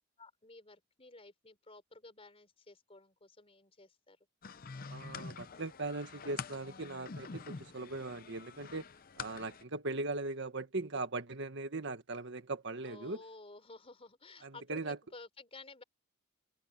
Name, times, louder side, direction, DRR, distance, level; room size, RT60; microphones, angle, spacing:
voice 1, 0.2-4.2 12.8-15.8, left 2 dB, 30° left, 4.0 m, -54 dB
sound 1, 4.4-9.6, left 5 dB, 45° left, 0.7 m, -46 dB
voice 2, 4.9-8.9 9.2-13.2 14.4-15.0, right 2 dB, 60° right, 1.6 m, -39 dB
open air
head